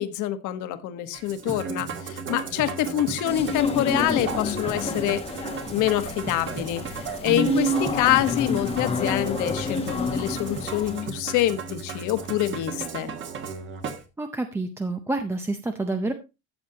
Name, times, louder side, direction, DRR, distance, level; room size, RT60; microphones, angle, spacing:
voice 1, 0.0-5.2 5.7-13.1, left 13 dB, 60° left, 10 dB, 1.3 m, -26 dB
Musical instrument, 1.1-14.0, right 5 dB, 35° right, 1.5 m, -33 dB
sound 1, 3.3-11.1, left 5 dB, 15° left, 1.0 m, -30 dB
voice 2, 14.2-16.1, right 2 dB, 5° right, 6 dB, 0.6 m, -28 dB
13.5 x 7.4 x 2.8 m, 0.26 s
cardioid pair, 160°, 34 cm